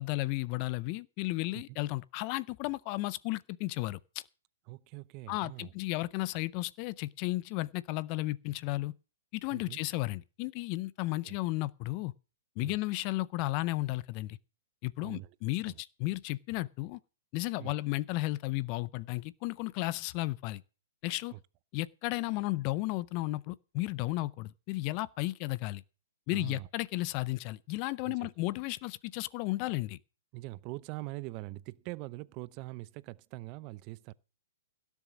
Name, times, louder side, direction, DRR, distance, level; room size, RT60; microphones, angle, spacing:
voice 1, 0.0-4.0 5.3-8.9 9.3-12.1 12.6-14.4 14.8-17.0 17.3-20.6 21.0-21.3 21.7-25.8 26.3-30.0, left 19 dB, 35° left, 0.5 m, -34 dB
voice 2, 4.7-5.7 9.5-9.8 11.2-11.4 12.6-12.8 15.0-15.4 15.7-15.8 17.6-17.7 21.3-21.4 26.3-26.7 28.0-28.3 30.3-34.1, right 19 dB, 35° right, 0.6 m, -43 dB
16.5 x 7.1 x 6.1 m
hypercardioid pair, 135°, 0 cm